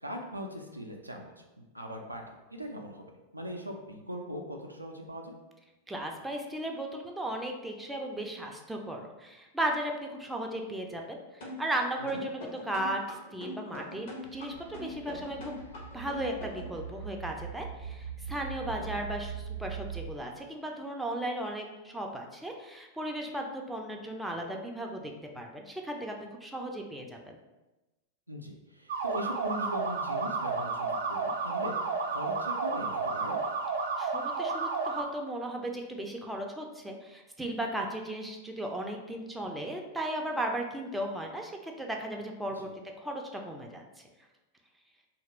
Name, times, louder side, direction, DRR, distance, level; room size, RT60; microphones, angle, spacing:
voice 1, 0.0-2.2 2.5-5.3 12.1-12.2 18.8-18.9 28.3-33.4 42.6-42.7, equal, 85° right, 2 dB, 0.3 m, -40 dB
voice 2, 5.9-15.6 15.9-26.1 26.4-27.4 34.0-42.7 43.0-43.8, right 1 dB, 5° right, 1 dB, 0.4 m, -36 dB
sound 1, 11.4-16.7, left 2 dB, 55° left, 0.8 m, -42 dB
sound 2, 14.2-20.1, right 7 dB, 80° left, 0.3 m, -42 dB
sound 3, 28.9-35.0, right 4 dB, 60° right, 0.7 m, -31 dB
2.8 x 2.4 x 3.0 m, 1.1 s
figure-of-eight pair, 90°, 0 cm